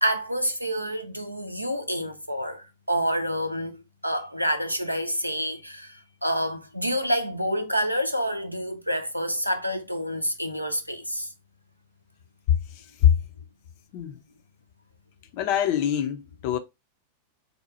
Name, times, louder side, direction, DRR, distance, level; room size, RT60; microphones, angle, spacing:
voice 1, 0.0-3.8 4.0-11.3, equal, 90° right, 0.4 m, -28 dB
voice 2, 12.5-13.2 13.9-14.2 15.3-16.6, left 10 dB, 45° left, 0.5 m, -24 dB
4.0 x 2.2 x 2.8 m
figure-of-eight pair, 90°, 0 cm